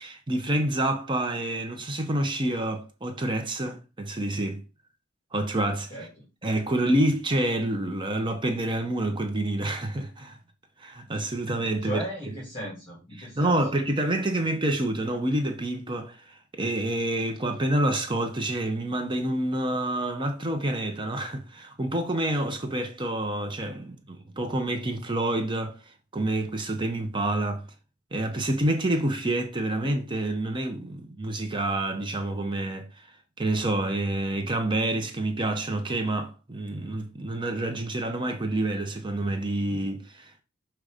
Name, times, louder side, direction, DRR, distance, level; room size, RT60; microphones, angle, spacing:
voice 1, 0.0-4.6 5.3-5.9 6.4-10.4 10.8-12.0 13.2-27.7 28.1-40.3, right 1 dB, 25° right, 0.7 m, -28 dB
voice 2, 5.9-6.3 11.8-13.6, equal, 30° left, 2.4 m, -36 dB
6.3 x 3.1 x 5.0 m
head